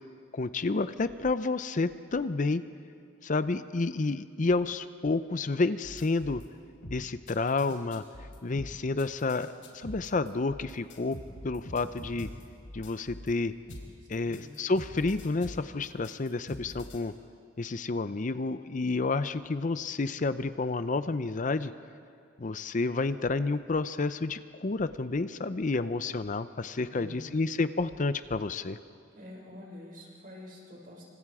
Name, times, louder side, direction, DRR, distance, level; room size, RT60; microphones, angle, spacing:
voice 1, 0.3-2.6 3.2-6.4 6.9-8.0 8.4-9.5 9.7-11.2 11.4-12.3 12.7-13.5 14.1-17.1 17.6-21.7 22.4-28.8, left 3 dB, 40° left, 12 dB, 0.6 m, -30 dB
sound 1, 5.8-6.5 6.8-13.3 13.7-17.0, left 1 dB, 85° left, 3.9 m, -44 dB
voice 2, 14.2-14.6 26.9-27.4 29.1-31.0, left 1 dB, 45° right, -1 dB, 6.1 m, -47 dB
28.5 x 25.5 x 4.9 m, 2.4 s
head